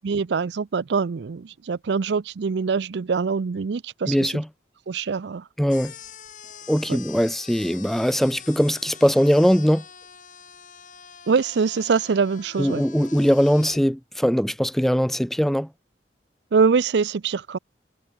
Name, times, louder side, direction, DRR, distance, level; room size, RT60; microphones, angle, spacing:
voice 1, 0.0-4.3 4.9-5.4 6.9-7.0 11.3-12.8 16.5-17.6, right 5 dB, 75° right, 0.5 m, -24 dB
voice 2, 4.1-4.5 5.6-5.9 6.7-9.8 12.6-15.7, equal, ahead, 0.5 m, -21 dB
sound 1, 5.7-13.8, left 7 dB, 45° left, 2.8 m, -44 dB
head